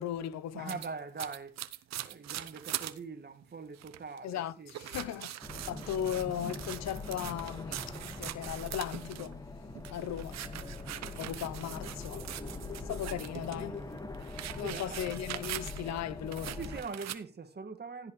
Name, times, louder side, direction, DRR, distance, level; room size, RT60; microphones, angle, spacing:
voice 1, 0.0-0.8 4.2-5.3 5.7-9.4 9.9-10.4 11.2-12.3 12.8-13.9 14.6-16.6, left 10 dB, 65° left, 0.9 m, -37 dB
voice 2, 0.5-1.6 2.0-5.3 11.3-11.6 14.6-15.1 16.5-18.1, right 4 dB, 35° right, 2.1 m, -43 dB
sound 1, 0.7-3.0 3.4-3.5 3.7-4.2 4.7-9.3 9.7-13.6 14.0-16.0 16.3-17.2, right 13 dB, 65° right, 1.0 m, -42 dB
sound 2, 5.4-16.8, left 2 dB, 15° left, 1.9 m, -43 dB
16.0 x 8.3 x 3.3 m
hypercardioid pair, 50°, 29 cm